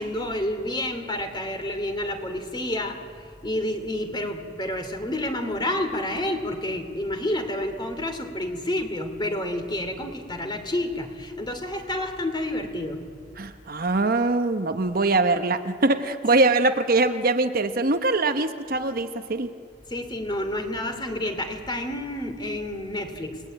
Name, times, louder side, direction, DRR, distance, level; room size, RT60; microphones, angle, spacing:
voice 1, 0.0-3.0 3.4-13.1 19.9-23.4, left 1 dB, 25° left, 6 dB, 2.7 m, -29 dB
voice 2, 13.4-19.5, right 2 dB, 50° right, 8 dB, 1.0 m, -22 dB
29.0 x 20.0 x 9.1 m, 2.2 s
head